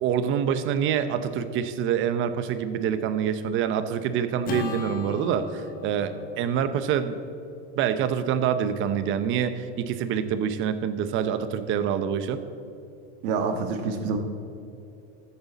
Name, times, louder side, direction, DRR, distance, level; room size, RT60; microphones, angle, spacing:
voice 1, 0.0-7.2 7.8-12.4, right 8 dB, 40° right, 11 dB, 0.8 m, -26 dB
Acoustic guitar / Strum, 4.4-8.9, left 6 dB, 25° left, 1.1 m, -39 dB
voice 2, 13.2-14.2, right 5 dB, 60° right, 6 dB, 1.4 m, -27 dB
14.0 x 9.9 x 4.1 m, 2.7 s
supercardioid pair, 145°, 33 cm